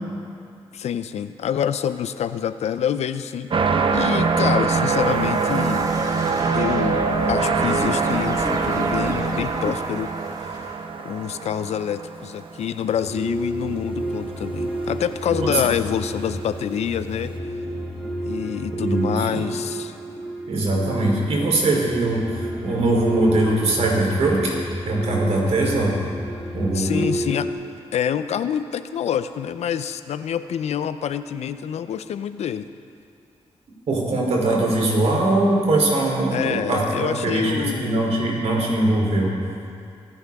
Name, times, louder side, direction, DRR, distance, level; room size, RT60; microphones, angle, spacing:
voice 1, 0.7-3.5 3.9-5.9 6.5-10.1 10.4-10.6 11.0-17.3 18.2-19.9 26.7-27.5 27.9-32.7 36.3-38.1, left 9 dB, 85° left, 12 dB, 0.5 m, -26 dB
sound 1, 3.5-12.6 13.2-13.3, right 4 dB, 50° right, 0.8 m, -23 dB
sound 2, 4.2-10.8, right 1 dB, 30° right, 1.5 m, -35 dB
sound 3, 12.8-27.5, right 1 dB, 5° right, 2.9 m, -30 dB
voice 2, 18.7-19.5 20.5-24.6 24.8-25.9 26.5-27.1 33.9-39.4, right 2 dB, 75° right, -2 dB, 3.3 m, -21 dB
24.0 x 10.5 x 3.6 m, 2.4 s
cardioid pair, 85°, 11 cm